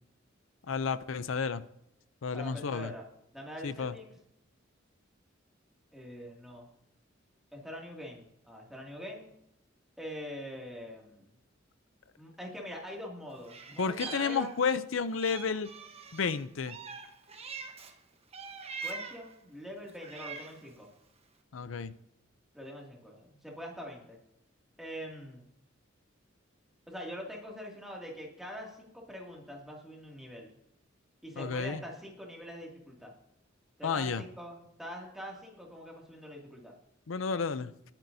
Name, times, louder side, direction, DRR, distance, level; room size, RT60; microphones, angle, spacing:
voice 1, 0.7-1.6 2.2-2.9 3.6-3.9 13.8-15.7 16.1-16.8 21.5-21.9 31.4-31.8 33.8-34.2 37.1-37.7, left 5 dB, 85° left, 13 dB, 0.6 m, -31 dB
voice 2, 2.3-3.0 3.3-4.1 5.9-6.7 7.5-9.3 10.0-11.3 12.2-14.5 18.8-20.9 22.5-24.2 24.8-25.4 26.9-30.5 31.2-33.1 33.8-36.7, equal, ahead, -2 dB, 2.4 m, -44 dB
Meow, 13.4-14.8 15.2-17.9 18.3-19.3 19.9-20.7, right 5 dB, 30° right, 1.0 m, -43 dB
20.5 x 9.0 x 2.7 m, 0.78 s
head